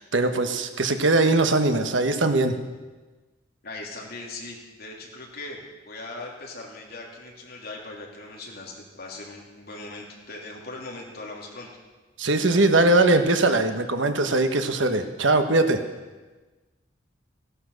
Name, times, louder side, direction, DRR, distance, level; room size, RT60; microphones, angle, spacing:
voice 1, 0.0-2.5 12.2-15.8, right 2 dB, 75° right, 7 dB, 1.3 m, -21 dB
voice 2, 3.6-11.7, left 2 dB, 55° left, -1 dB, 3.1 m, -39 dB
16.5 x 11.5 x 6.6 m, 1.2 s
head